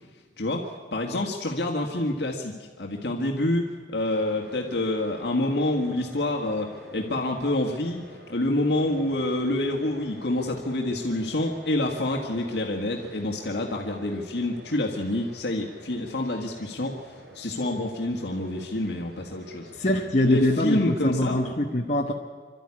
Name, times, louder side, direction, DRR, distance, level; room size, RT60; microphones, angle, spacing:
voice 1, 0.4-8.0 8.3-19.7 20.2-21.5, left 1 dB, 70° left, 1 dB, 1.8 m, -27 dB
sound 1, 4.0-21.5, right 1 dB, 65° right, 4.5 m, -48 dB
voice 2, 19.7-22.1, left 1 dB, 40° left, 0 dB, 1.2 m, -23 dB
26.0 x 12.5 x 9.8 m, 1.5 s
head